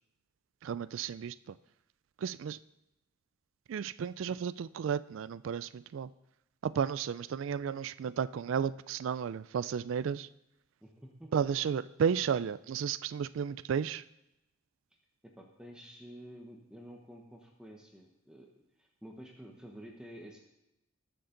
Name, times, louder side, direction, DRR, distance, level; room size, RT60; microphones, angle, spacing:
voice 1, 0.6-1.6 2.2-2.6 3.7-6.1 6.6-10.3 11.3-14.0, right 7 dB, 65° right, 16 dB, 0.3 m, -33 dB
voice 2, 10.8-11.3 15.2-18.5 18.8-20.4, equal, 5° right, 0 dB, 1.0 m, -50 dB
20.0 x 7.0 x 3.8 m, 0.90 s
head